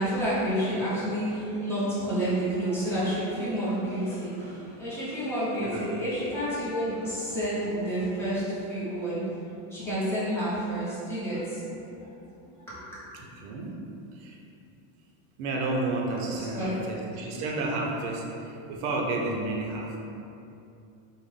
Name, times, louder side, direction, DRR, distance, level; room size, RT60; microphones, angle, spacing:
voice 1, 0.0-9.3 9.7-12.1 12.6-13.0 16.3-16.8, equal, 5° left, -11 dB, 0.7 m, -30 dB
voice 2, 13.1-13.8 14.1-14.4 15.4-20.0, right 2 dB, 50° right, -1 dB, 0.5 m, -31 dB
3.4 x 2.1 x 3.6 m, 2.7 s
cardioid pair, 170°, 40 cm